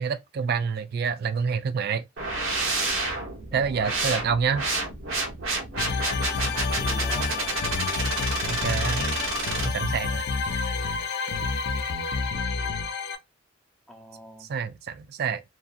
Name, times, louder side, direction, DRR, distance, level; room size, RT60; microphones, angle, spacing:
voice 1, 0.0-2.1 3.5-4.6 8.5-9.1 9.6-10.2 14.5-15.4, right 6 dB, 50° right, 0.3 m, -27 dB
sound 1, 2.2-9.7, right 3 dB, 80° right, 0.9 m, -29 dB
voice 2, 3.5-3.8 6.4-7.7 13.9-14.5, equal, ahead, 0.6 m, -43 dB
sound 2, 5.8-13.1, left 4 dB, 55° left, 0.4 m, -29 dB
2.7 x 2.4 x 2.4 m
head